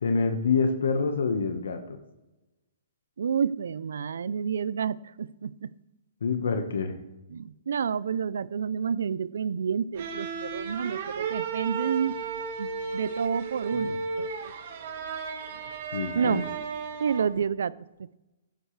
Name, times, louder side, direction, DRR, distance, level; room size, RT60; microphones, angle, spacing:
voice 1, 0.0-2.0 6.2-7.0 15.9-16.4, left 4 dB, 85° left, 6 dB, 1.4 m, -26 dB
voice 2, 3.2-5.7 7.3-12.2 12.6-14.5 16.1-16.4 17.0-17.7 18.0-18.2, right 7 dB, 80° right, 19 dB, 0.5 m, -29 dB
sound 1, 10.0-17.5, right 5 dB, 55° right, 1.9 m, -34 dB
16.0 x 10.5 x 3.3 m, 1.0 s
hypercardioid pair, 160°, 0 cm